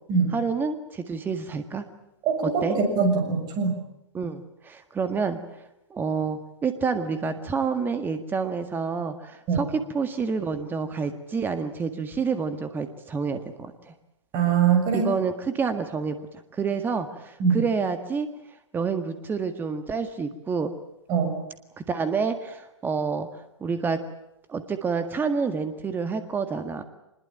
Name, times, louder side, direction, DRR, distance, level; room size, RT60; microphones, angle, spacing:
voice 1, 0.3-1.8 2.4-2.8 4.1-5.4 5.9-13.9 14.9-16.2 16.5-18.3 18.7-20.7 21.8-23.3 23.6-24.0 24.5-26.8, right 5 dB, 15° right, 9 dB, 1.7 m, -28 dB
voice 2, 2.2-3.8 9.5-9.6 14.3-15.1 17.4-17.6 21.1-21.4, right 6 dB, 30° right, 5 dB, 6.8 m, -22 dB
25.0 x 21.5 x 8.9 m, 0.86 s
figure-of-eight pair, 110°, 15 cm